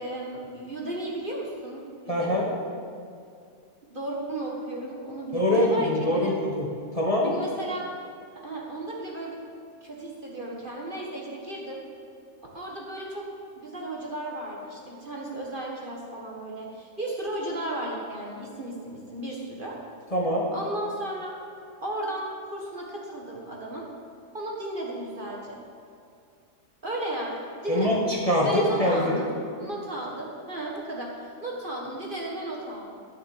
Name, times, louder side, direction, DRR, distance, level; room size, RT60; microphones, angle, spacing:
voice 1, 0.0-2.5 3.9-6.4 7.2-7.9 8.3-9.4 9.8-11.8 12.5-13.3 13.5-19.8 20.5-21.4 21.8-23.9 24.3-25.6 26.8-28.0 28.4-29.3 29.6-33.0, right 1 dB, 35° right, -2 dB, 1.6 m, -34 dB
voice 2, 2.1-2.5 5.3-6.7 6.9-7.3 20.1-20.5 27.7-29.2, left 1 dB, 20° left, -3 dB, 1.4 m, -24 dB
12.5 x 7.2 x 7.7 m, 2.4 s
omnidirectional pair, 1.7 m